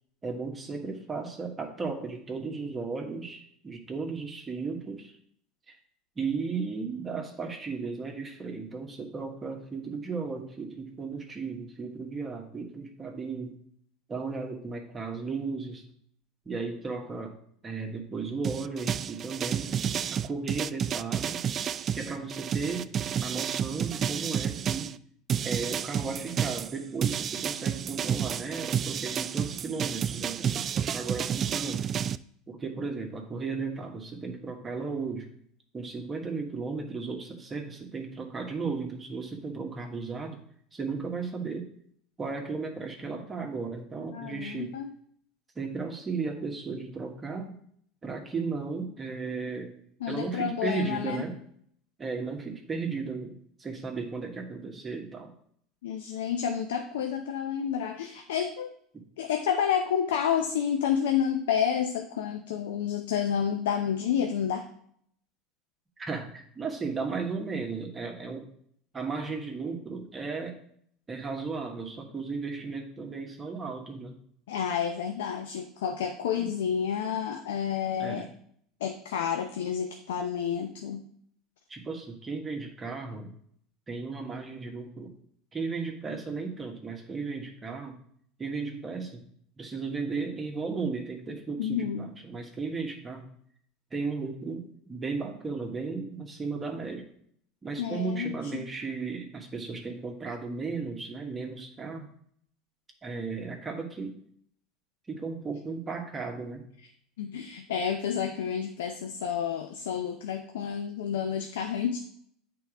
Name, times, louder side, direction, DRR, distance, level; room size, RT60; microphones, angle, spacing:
voice 1, 0.2-5.1 5.7-5.8 6.2-13.6 14.1-15.8 16.4-17.4 17.6-19.7 20.1-21.4 21.9-22.9 23.2-25.0 25.4-31.9 32.5-35.3 35.7-40.4 40.7-41.7 42.2-44.8 45.5-47.6 48.0-49.7 50.1-51.4 52.0-55.3 58.9-59.0 66.0-68.5 68.9-70.6 71.1-74.2 76.4-76.5 78.0-78.3 81.7-83.3 83.9-85.1 85.5-88.0 88.4-89.2 89.6-93.3 93.9-97.1 97.6-102.1 103.0-104.2 105.1-106.6, right 4 dB, 25° right, 1 dB, 1.3 m, -35 dB
sound 1, 18.4-24.9 25.3-32.2, right 8 dB, 40° right, 0.3 m, -30 dB
voice 2, 44.1-44.9 50.0-51.2 55.8-58.7 59.2-64.7 74.5-78.3 78.8-81.1 91.6-92.1 97.8-98.6 107.2-112.0, left 8 dB, 85° left, 5 dB, 0.6 m, -30 dB
8.3 x 3.9 x 4.9 m, 0.64 s
supercardioid pair, 100°, 0 cm